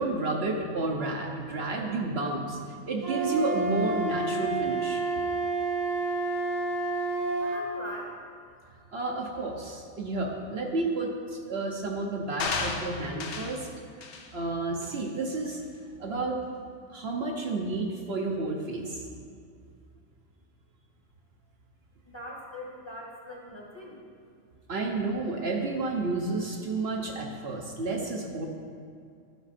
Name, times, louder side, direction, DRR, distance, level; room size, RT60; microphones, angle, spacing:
voice 1, 0.0-2.6 2.9-5.0 8.9-13.7 14.3-15.6 16.0-16.4 16.9-19.1 24.7-28.5, right 2 dB, 55° right, 0 dB, 1.0 m, -31 dB
Wind instrument woodwind instrument, 3.0-7.6, right 3 dB, 80° right, 1.6 m, -29 dB
voice 2, 7.4-8.2 22.0-24.0, left 1 dB, 20° left, -3 dB, 1.1 m, -41 dB
sound 1, 12.4-13.6 14.0-14.3 14.8-15.0, left 4 dB, 65° left, 1.0 m, -33 dB
11.5 x 5.5 x 4.2 m, 2.3 s
omnidirectional pair, 1.3 m